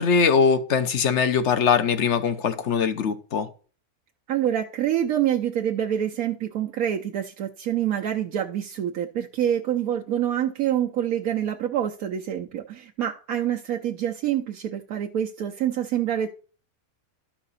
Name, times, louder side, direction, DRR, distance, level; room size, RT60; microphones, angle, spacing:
voice 1, 0.0-3.5, left 6 dB, 55° left, 1.1 m, -21 dB
voice 2, 4.3-16.3, right 10 dB, 75° right, 1.2 m, -26 dB
12.5 x 5.8 x 4.1 m
omnidirectional pair, 1.5 m